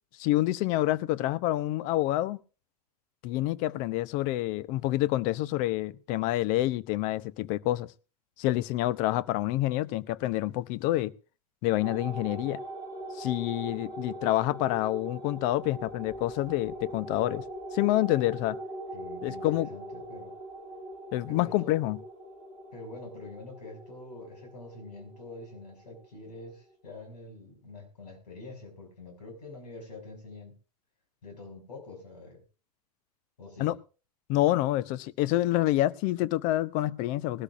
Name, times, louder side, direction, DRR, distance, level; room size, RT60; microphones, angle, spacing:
voice 1, 0.2-2.4 3.2-7.9 8.4-11.1 11.6-12.6 13.1-17.4 17.7-18.6 19.2-19.7 21.1-22.0 33.6-33.8 34.3-37.4, left 16 dB, 40° left, 0.7 m, -27 dB
sound 1, 11.8-26.6, right 1 dB, 25° left, 2.8 m, -42 dB
voice 2, 18.9-20.3 21.3-21.8 22.7-30.5 31.2-32.4 33.4-33.7, left 2 dB, 75° left, 6.1 m, -45 dB
20.5 x 13.0 x 2.5 m
figure-of-eight pair, 100°, 21 cm